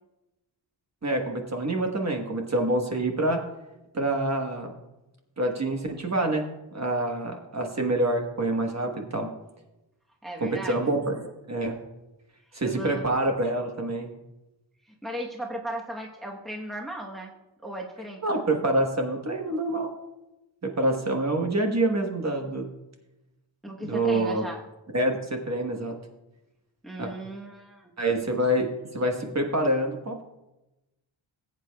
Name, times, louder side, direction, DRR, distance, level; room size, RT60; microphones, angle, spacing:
voice 1, 1.0-3.4 3.9-4.7 5.4-6.4 6.7-9.3 10.4-11.8 12.5-14.1 18.2-19.9 20.6-22.7 23.8-24.4 24.9-26.0 27.0-27.1 28.0-30.2, right 1 dB, 35° right, 3 dB, 1.2 m, -26 dB
voice 2, 10.2-10.9 12.6-13.1 14.9-17.3 17.6-18.2 23.6-24.6 26.8-27.9, right 1 dB, ahead, 0 dB, 1.0 m, -36 dB
19.5 x 8.6 x 2.3 m, 0.99 s
wide cardioid pair, 125°, 48 cm